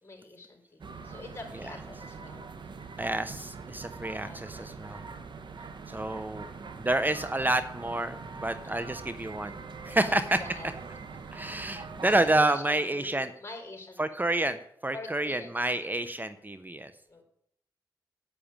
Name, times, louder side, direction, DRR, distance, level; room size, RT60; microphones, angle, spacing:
voice 1, 0.0-2.5 4.2-4.7 8.6-8.9 9.8-10.1 10.4-10.7 11.2-11.3 12.2-14.2 14.9-16.0 17.1-17.2, left 2 dB, 30° left, 2 dB, 4.6 m, -45 dB
sound 1, 0.8-12.4, right 4 dB, 65° right, 1.2 m, -43 dB
voice 2, 3.0-5.0 5.9-6.5 6.8-9.6 9.8-10.4 11.3-13.3 14.0-16.9, right 1 dB, 20° right, 12 dB, 0.9 m, -29 dB
9.1 x 8.6 x 8.8 m, 0.72 s
cardioid pair, 45°, 8 cm